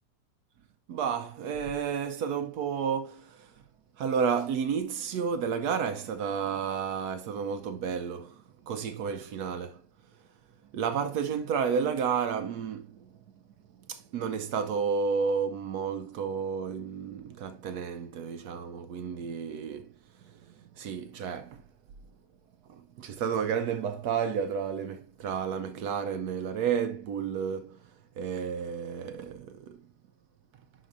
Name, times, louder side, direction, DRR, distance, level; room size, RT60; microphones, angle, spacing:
voice 1, 0.9-3.5 4.0-9.8 10.7-13.1 13.7-21.7 22.7-27.9 28.2-29.9, right 6 dB, 70° right, 1.1 m, -31 dB
10.0 x 4.0 x 2.6 m
omnidirectional pair, 1.9 m